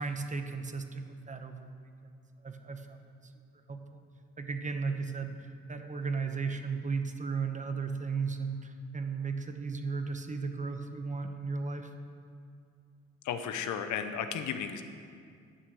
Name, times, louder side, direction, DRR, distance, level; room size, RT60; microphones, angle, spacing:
voice 1, 0.0-3.3 3.7-4.0 4.4-11.9, right 4 dB, 25° right, 6 dB, 1.0 m, -36 dB
voice 2, 13.2-14.8, left 7 dB, 75° left, 8 dB, 0.9 m, -34 dB
11.0 x 6.1 x 8.4 m, 2.3 s
cardioid pair, 95°, 30 cm